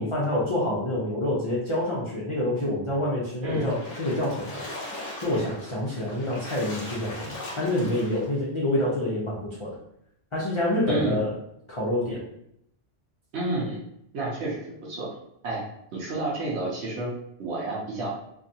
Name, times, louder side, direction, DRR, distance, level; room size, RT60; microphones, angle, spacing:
voice 1, 0.0-4.6 5.2-9.8 10.3-11.3 11.7-12.2, left 1 dB, 35° left, -7 dB, 0.5 m, -27 dB
voice 2, 3.4-3.7 10.9-11.2 13.3-13.8 14.1-15.1 15.4-15.6 15.9-17.1 17.4-18.1, right 2 dB, 85° right, -5 dB, 1.0 m, -30 dB
Splash splatter, 3.5-8.4, left 1 dB, 55° left, 0.9 m, -39 dB
2.7 x 2.3 x 2.6 m, 0.75 s
omnidirectional pair, 1.1 m